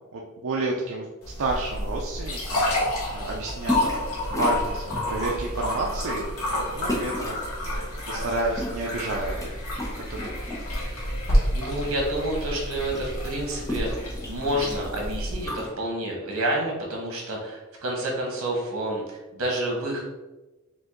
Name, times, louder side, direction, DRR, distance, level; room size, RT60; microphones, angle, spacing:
voice 1, 0.1-2.9 3.1-3.9 4.3-7.4 7.9-9.6 10.0-10.6, right 2 dB, 65° right, -1 dB, 0.5 m, -31 dB
sound 1, 1.2-15.5, left 1 dB, 80° left, 1.4 m, -29 dB
sound 2, 3.7-4.1 4.3-5.2 5.7-5.9 6.9-7.5 8.3-9.5 9.7-10.9 11.3-12.0 12.3-12.4 12.6-15.7, left 1 dB, 15° left, 0.9 m, -33 dB
voice 2, 11.5-20.0, right 1 dB, 85° right, -1 dB, 1.4 m, -29 dB
4.9 x 2.6 x 3.7 m, 1.1 s
head